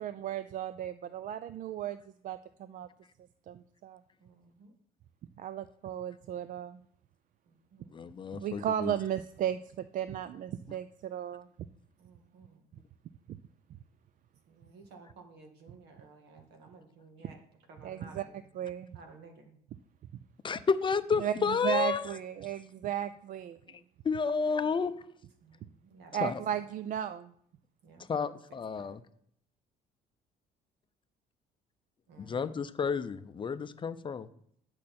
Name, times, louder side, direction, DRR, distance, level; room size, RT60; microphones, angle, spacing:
voice 1, 0.0-2.9 3.5-4.0 5.4-6.8 8.4-11.5 17.8-18.3 18.6-19.0 21.2-21.3 21.6-23.6 26.1-27.3, right 10 dB, 50° right, 13 dB, 0.4 m, -35 dB
voice 2, 4.2-4.7 7.5-8.0 12.0-12.7 14.5-17.4 17.7-18.4 18.9-19.5 25.4-26.2 26.5-26.7 27.8-28.3 28.8-29.0 32.1-32.5, right 4 dB, 80° right, 4 dB, 1.9 m, -55 dB
voice 3, 7.9-8.9 20.4-22.2 23.7-25.1 26.2-26.4 28.0-29.0 32.2-34.3, left 5 dB, 30° left, 12 dB, 0.5 m, -31 dB
10.5 x 6.3 x 4.3 m, 0.67 s
cardioid pair, 110°, 17 cm